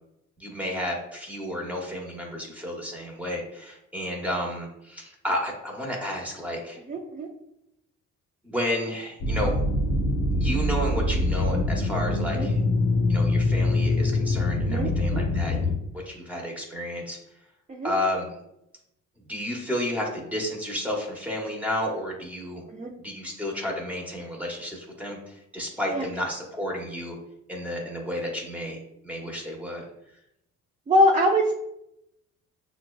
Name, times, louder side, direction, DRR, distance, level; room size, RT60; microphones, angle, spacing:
voice 1, 0.4-6.8 8.4-9.5 10.4-12.6 13.1-15.6 15.9-17.2 17.8-18.3 19.3-22.6 23.0-27.2 27.5-28.8 29.0-29.8, left 1 dB, 5° right, -1 dB, 1.1 m, -31 dB
voice 2, 6.9-7.3 12.3-12.5 14.6-15.2 17.7-17.9 22.7-22.9 25.9-26.1 30.9-31.5, equal, 25° right, -1 dB, 0.5 m, -23 dB
sound 1, 9.2-15.7, left 2 dB, 50° left, 0.7 m, -24 dB
5.9 x 2.2 x 2.3 m, 0.81 s
cardioid pair, 90°, 30 cm